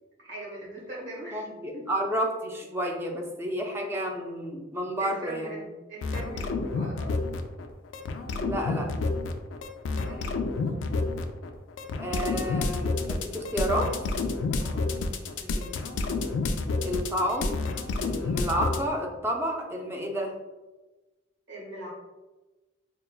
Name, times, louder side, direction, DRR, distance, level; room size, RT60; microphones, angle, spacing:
voice 1, 0.2-1.4 1.7-1.9 5.0-5.6 5.9-7.1 9.9-10.4 14.6-14.9 15.4-15.7 21.5-21.9, right 1 dB, 80° right, -5 dB, 1.3 m, -40 dB
voice 2, 1.3-5.6 8.4-8.9 12.0-13.9 16.8-17.6 18.0-20.3, equal, 15° right, 1 dB, 0.4 m, -30 dB
sound 1, 6.0-7.7 7.9-18.8, left 3 dB, 90° left, 0.3 m, -29 dB
5.3 x 2.2 x 2.3 m, 1.1 s
head